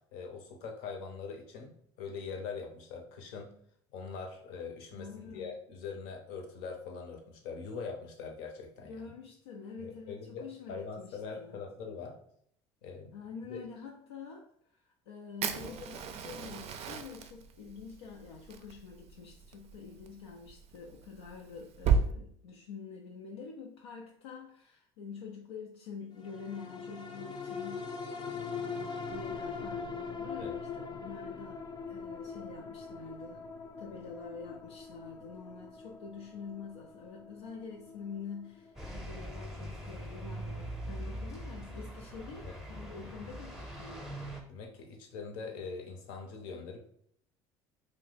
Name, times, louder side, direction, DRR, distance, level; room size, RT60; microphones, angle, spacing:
voice 1, 0.1-3.5 3.9-9.1 9.8-12.2 12.8-13.2 13.5-13.6 30.4-30.5 42.5-42.6 43.0-43.1 44.5-46.8, left 5 dB, 70° left, 2 dB, 0.8 m, -42 dB
voice 2, 4.9-5.5 8.8-11.6 13.1-33.4 33.8-44.1, left 5 dB, 90° left, 0 dB, 0.4 m, -47 dB
Fire, 15.4-22.0, right 6 dB, 50° right, 0.4 m, -35 dB
sound 1, 26.2-40.9 41.3-41.4, left 5 dB, 35° left, 0.5 m, -42 dB
sound 2, 38.7-44.4, right 1 dB, 5° right, 0.7 m, -42 dB
2.6 x 2.1 x 3.9 m, 0.65 s
hypercardioid pair, 80°, 13 cm